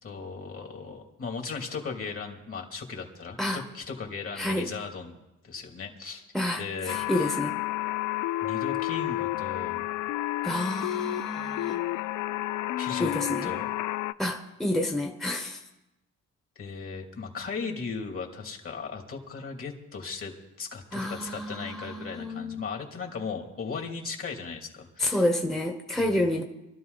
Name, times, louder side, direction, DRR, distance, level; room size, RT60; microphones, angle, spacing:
voice 1, 0.0-5.2 5.4-6.3 6.6-7.3 8.4-9.8 12.8-13.1 13.4-13.7 16.6-25.3 25.9-26.2, left 5 dB, 45° left, 2 dB, 2.8 m, -37 dB
voice 2, 4.3-4.7 6.3-7.6 10.4-11.8 13.0-13.5 14.2-15.6 20.9-22.6 25.0-26.4, left 1 dB, ahead, 3 dB, 1.1 m, -29 dB
sound 1, 6.9-14.1, left 16 dB, 75° left, 0.5 m, -30 dB
23.5 x 12.5 x 4.1 m, 0.97 s
cardioid pair, 90°, 30 cm